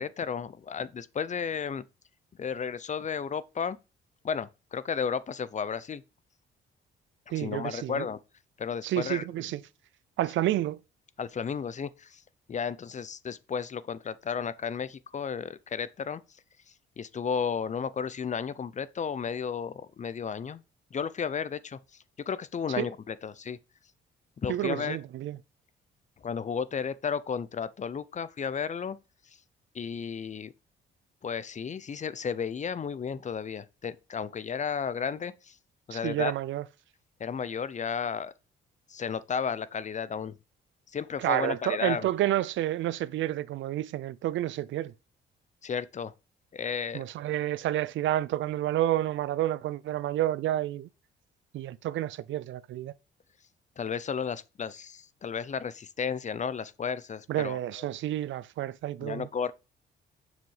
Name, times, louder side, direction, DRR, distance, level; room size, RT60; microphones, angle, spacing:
voice 1, 0.0-1.8 2.4-3.8 4.2-6.0 7.3-8.2 8.6-9.2 11.2-12.2 12.5-16.2 17.0-20.6 20.9-21.8 22.3-23.6 24.4-25.0 26.2-29.0 29.7-30.5 31.2-35.6 35.9-36.3 37.2-38.3 38.9-40.4 40.9-42.1 45.6-46.1 46.5-47.0 53.8-57.6 59.0-59.5, left 6 dB, 35° left, 0.7 m, -33 dB
voice 2, 7.3-8.1 8.8-9.6 10.2-10.8 22.8-22.9 24.5-25.4 35.9-36.6 41.2-44.9 46.9-50.9 51.5-52.9 57.3-59.3, right 13 dB, 75° right, 0.5 m, -30 dB
7.3 x 6.1 x 5.5 m
cardioid pair, 90°, 20 cm